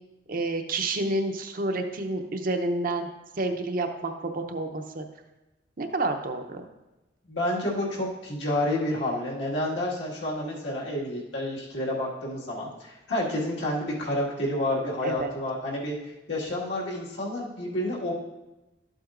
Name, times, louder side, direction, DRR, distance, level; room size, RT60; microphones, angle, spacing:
voice 1, 0.3-3.1 3.4-5.0 5.8-6.6 15.0-15.3, right 2 dB, 50° right, 5 dB, 0.7 m, -29 dB
voice 2, 7.3-18.1, left 1 dB, 75° left, -4 dB, 2.0 m, -29 dB
12.0 x 7.7 x 2.5 m, 1.0 s
head